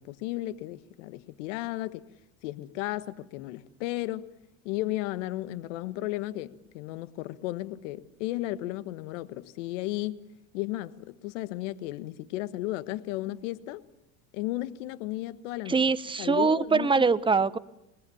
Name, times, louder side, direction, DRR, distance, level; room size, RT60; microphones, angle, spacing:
voice 1, 0.0-2.1 2.4-4.3 4.6-10.2 10.5-13.8 14.3-15.8 16.2-17.1, left 16 dB, 80° left, 1.5 m, -34 dB
voice 2, 15.7-17.6, right 4 dB, 15° right, 1.1 m, -23 dB
28.0 x 21.0 x 7.1 m
supercardioid pair, 95°, 37 cm